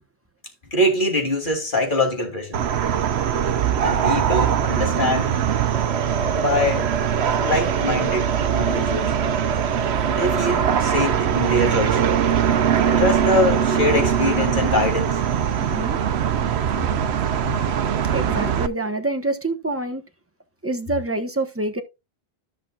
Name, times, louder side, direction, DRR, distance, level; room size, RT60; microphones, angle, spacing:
voice 1, 0.7-2.6 3.8-5.4 6.3-6.9 7.4-9.1 10.1-12.0 12.8-15.2, left 1 dB, 45° left, 3.1 m, -23 dB
sound 1, 2.5-18.7, right 8 dB, 70° right, 1.0 m, -21 dB
sound 2, 5.7-10.8, right 3 dB, 85° right, 1.7 m, -30 dB
voice 2, 15.6-16.0 18.1-20.0 20.6-21.8, right 2 dB, 10° right, 1.1 m, -26 dB
14.0 x 6.1 x 2.4 m
omnidirectional pair, 1.1 m